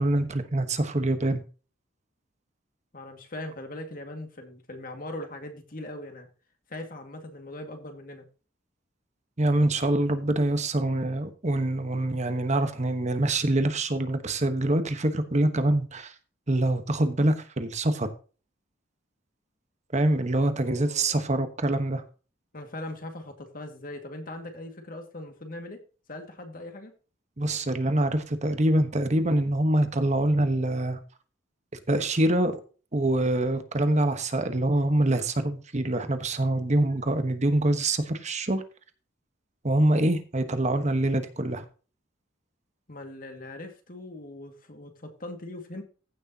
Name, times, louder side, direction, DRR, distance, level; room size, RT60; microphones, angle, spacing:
voice 1, 0.0-1.4 9.4-16.1 16.5-18.1 19.9-22.0 27.4-31.0 31.9-32.6 32.9-38.6 39.6-41.6, right 1 dB, 35° right, 9 dB, 1.2 m, -25 dB
voice 2, 2.9-6.3 6.7-8.3 20.6-21.3 22.5-25.8 26.1-26.9 42.9-45.8, left 1 dB, 45° left, 5 dB, 2.0 m, -40 dB
15.5 x 6.6 x 2.9 m, 0.36 s
head